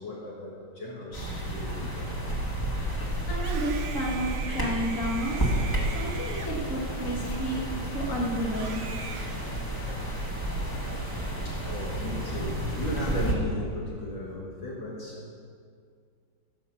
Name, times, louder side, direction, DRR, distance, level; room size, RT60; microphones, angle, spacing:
voice 1, 0.0-2.2 7.4-7.6 7.9-8.0 10.6-10.9 11.5-15.3, left 1 dB, 60° left, -3 dB, 2.1 m, -37 dB
sound 1, 1.1-13.3, right 1 dB, 10° left, 1.5 m, -31 dB
voice 2, 2.7-5.5 5.9-7.6 7.9-8.8, equal, 40° left, -2 dB, 2.1 m, -32 dB
Screaming, 3.4-7.8 8.4-10.2, right 6 dB, 90° right, 0.6 m, -42 dB
15.0 x 5.9 x 7.0 m, 2.2 s
omnidirectional pair, 2.4 m